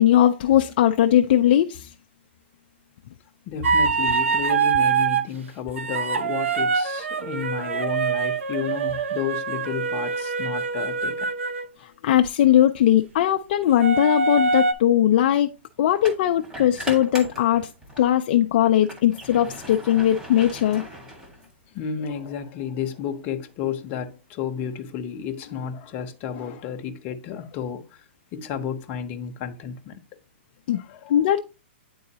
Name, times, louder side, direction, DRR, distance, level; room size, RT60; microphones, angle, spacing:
voice 1, 0.0-1.9 12.0-15.5 15.8-17.7 18.0-20.8 30.7-30.8 31.1-31.4, left 11 dB, 50° left, 0.4 m, -19 dB
voice 2, 3.5-11.3 17.5-17.6 17.9-18.0 21.7-28.0 28.3-30.0 30.7-31.2, left 8 dB, 30° left, 0.8 m, -32 dB
sound 1, 3.6-5.2 5.8-11.7 13.8-14.7, right 5 dB, 85° right, 0.7 m, -24 dB
sound 2, 16.0-18.1 18.6-21.8, equal, 10° right, 1.6 m, -39 dB
9.5 x 3.8 x 2.8 m
hypercardioid pair, 150°, 7 cm